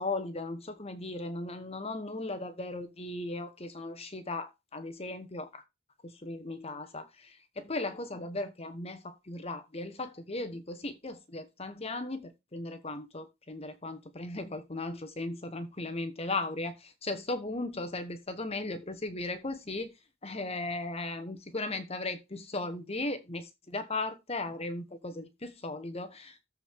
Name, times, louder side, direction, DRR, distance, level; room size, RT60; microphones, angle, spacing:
voice 1, 0.0-5.6 6.0-19.9 20.2-26.4, left 2 dB, 30° left, 1.2 m, -37 dB
13.5 x 4.7 x 3.6 m
head